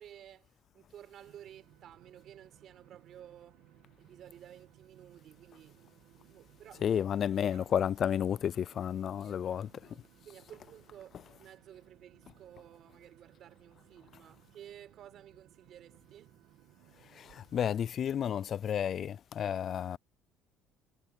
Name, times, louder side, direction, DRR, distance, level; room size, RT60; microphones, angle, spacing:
voice 1, 0.0-3.6 4.0-5.8 6.3-7.0 7.5-7.6 9.1-10.0 10.2-16.3, right 10 dB, 55° right, 4.6 m, -54 dB
sound 1, 1.2-17.6, right 15 dB, 80° right, 1.4 m, -62 dB
voice 2, 6.8-10.0 17.1-20.0, left 9 dB, 45° left, 0.3 m, -32 dB
cardioid pair, 125°, 0 cm